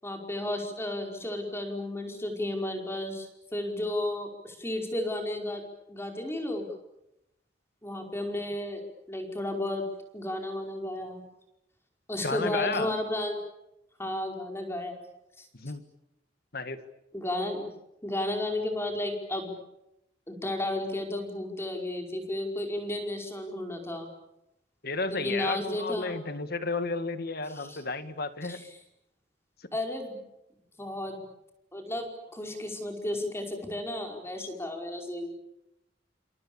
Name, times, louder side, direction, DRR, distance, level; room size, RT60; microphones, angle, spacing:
voice 1, 0.0-5.6 5.9-6.7 7.8-8.8 9.1-9.8 10.1-11.2 12.1-13.3 14.0-14.9 15.4-15.5 17.1-17.7 18.0-19.5 20.3-24.1 25.1-26.2 27.5-27.8 28.4-28.7 29.7-30.2 30.8-31.2 31.7-35.4, left 1 dB, 15° left, 3 dB, 5.2 m, -33 dB
voice 2, 12.2-13.0 15.6-15.8 16.5-16.8 24.8-28.6 34.4-34.5, left 3 dB, 55° left, 10 dB, 1.9 m, -32 dB
29.0 x 27.0 x 7.2 m, 0.88 s
head